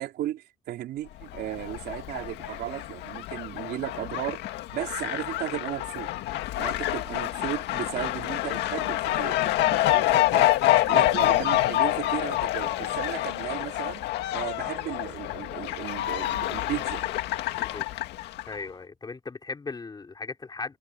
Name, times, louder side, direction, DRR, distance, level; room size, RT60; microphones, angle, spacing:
voice 1, 0.0-4.4 4.7-6.1 6.6-10.5 10.8-14.0 14.3-17.0, right 13 dB, 70° right, 3.7 m, -35 dB
Fowl, 1.2-18.6, left 15 dB, 80° left, 2.0 m, -27 dB
voice 2, 17.5-17.9 18.5-20.8, left 4 dB, 25° left, 4.8 m, -38 dB
cardioid pair, 110°, 17 cm